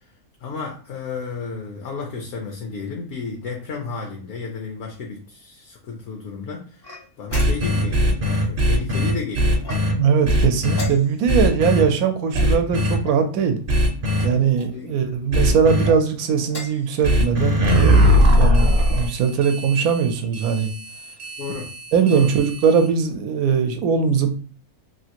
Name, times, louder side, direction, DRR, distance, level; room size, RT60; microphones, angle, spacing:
voice 1, 0.4-6.9 7.2-9.7 14.7-15.1 21.4-21.7 22.1-22.3, left 4 dB, 60° left, 0.8 m, -32 dB
sound 1, 6.8-7.9 9.6-10.2 10.7-11.4 12.3-13.3 14.1-14.7 15.7-16.0 16.4-16.9, left 2 dB, 30° left, 0.4 m, -37 dB
sound 2, 7.3-9.9 10.2-10.8 11.3-11.8 12.3-13.0 13.7-14.2 15.3-15.9 17.0-22.9, equal, 50° right, 0.8 m, -20 dB
voice 2, 9.9-13.6 14.2-20.7 21.9-24.3, right 6 dB, 85° right, 1.1 m, -20 dB
3.2 x 2.5 x 2.8 m
omnidirectional pair, 1.5 m